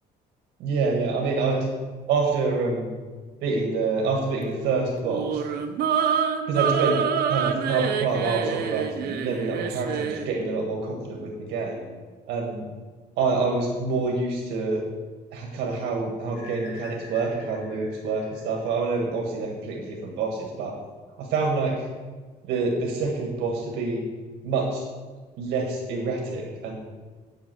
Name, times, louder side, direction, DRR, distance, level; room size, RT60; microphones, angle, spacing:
voice 1, 0.6-1.7 2.1-2.9 3.4-5.4 6.5-7.0 7.3-11.8 12.3-12.7 13.2-14.8 15.3-20.7 21.2-21.9 22.5-24.0 24.4-24.8 25.4-26.7, right 4 dB, 90° right, 0 dB, 1.6 m, -26 dB
sound 1, 5.0-10.3, right 7 dB, 70° right, 0.8 m, -26 dB
sound 2, 16.3-19.2, left 3 dB, 80° left, 2.4 m, -47 dB
8.1 x 5.3 x 7.7 m, 1.4 s
cardioid pair, 110°, 17 cm